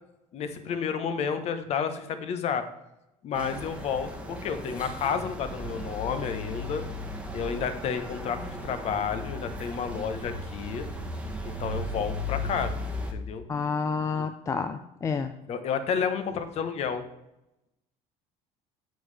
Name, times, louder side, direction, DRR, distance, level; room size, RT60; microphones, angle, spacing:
voice 1, 0.3-2.7 3.2-6.8 7.3-10.9 11.4-12.7 13.1-13.4 15.5-17.0, left 7 dB, 45° left, 9 dB, 1.0 m, -31 dB
sound 1, 3.3-13.1, left 1 dB, 10° right, 1.2 m, -36 dB
voice 2, 13.5-15.3, left 5 dB, 20° left, 9 dB, 0.4 m, -29 dB
9.0 x 7.4 x 3.4 m, 0.88 s
cardioid pair, 140°, 15 cm